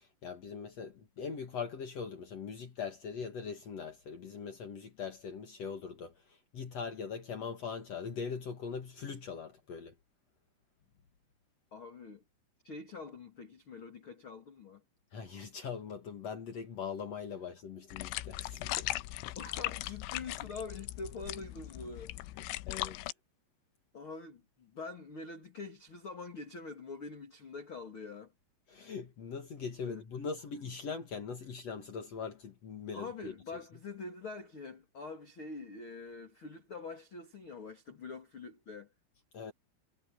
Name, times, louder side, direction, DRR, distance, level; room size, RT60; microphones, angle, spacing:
voice 1, 0.0-6.1 6.5-9.9 15.1-18.9 22.7-23.0 28.7-33.3 39.3-39.5, left 6 dB, 60° left, 1.7 m, -41 dB
voice 2, 11.7-12.2 12.6-14.8 19.4-22.2 23.9-28.3 29.8-30.0 32.9-38.9, left 4 dB, 35° left, 2.4 m, -45 dB
sound 1, 17.9-23.1, left 17 dB, 85° left, 3.1 m, -39 dB
omnidirectional pair, 5.5 m